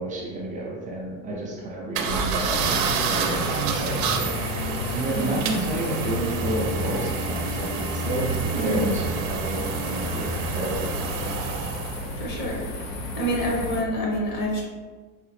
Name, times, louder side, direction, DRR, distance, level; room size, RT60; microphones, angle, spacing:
voice 1, 0.0-4.2 4.9-11.4, right 2 dB, 20° right, -3 dB, 0.5 m, -31 dB
sound 1, 1.9-12.1, right 5 dB, 90° right, 0.6 m, -29 dB
sound 2, 2.0-13.8, left 1 dB, 90° left, 0.8 m, -34 dB
sound 3, 4.1-12.0, left 2 dB, 65° left, 0.5 m, -37 dB
voice 2, 5.1-5.4 8.5-9.0 12.1-12.7 13.2-14.6, equal, 45° left, -2 dB, 1.2 m, -27 dB
4.8 x 2.1 x 3.1 m, 1.4 s
supercardioid pair, 130°, 44 cm